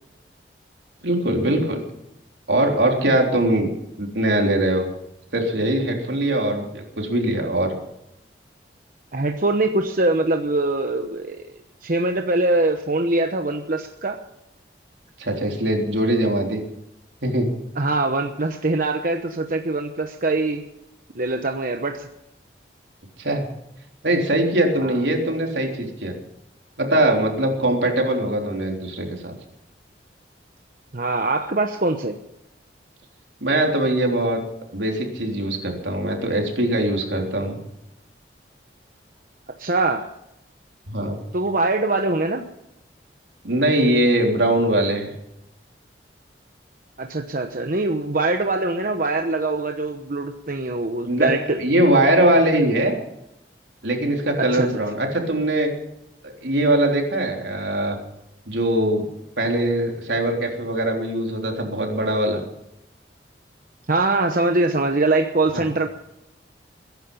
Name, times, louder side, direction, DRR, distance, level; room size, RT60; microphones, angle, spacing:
voice 1, 1.0-1.8 2.5-3.7 4.0-4.9 5.3-7.7 15.2-16.6 17.2-17.5 23.2-23.5 24.0-26.2 26.8-29.3 33.4-34.4 34.7-37.6 40.9-41.2 43.4-45.1 51.1-51.3 51.6-52.9 53.8-55.7 56.2-58.0 58.5-59.1 59.4-62.4 65.5-65.7, right 1 dB, 80° right, 1 dB, 3.6 m, -21 dB
voice 2, 9.1-11.5 11.8-14.2 17.8-20.6 21.1-22.1 24.8-25.0 30.9-32.2 39.6-40.1 41.3-42.4 47.0-51.6 54.4-54.8 63.9-65.9, right 2 dB, 50° right, 4 dB, 1.0 m, -23 dB
21.5 x 10.5 x 5.5 m, 0.86 s
head